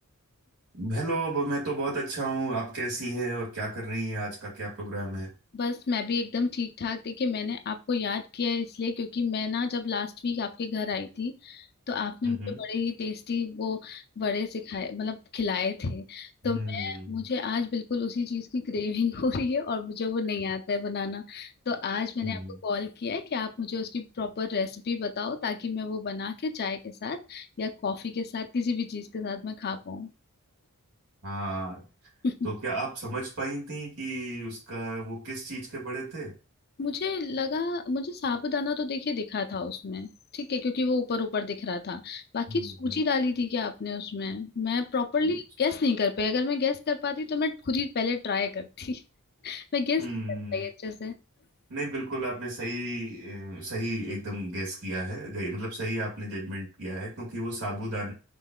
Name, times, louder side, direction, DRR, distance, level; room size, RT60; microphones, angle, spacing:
voice 1, 0.7-5.3 12.2-12.6 16.5-17.2 22.2-22.6 31.2-31.9 32.4-36.3 42.5-43.0 45.2-45.3 50.0-50.7 51.7-58.1, right 1 dB, 75° right, -4 dB, 2.2 m, -33 dB
voice 2, 5.5-30.1 32.2-32.5 36.8-49.0 49.4-50.1 50.5-51.1, left 4 dB, 45° left, 7 dB, 0.6 m, -30 dB
5.4 x 3.2 x 2.3 m, 0.32 s
head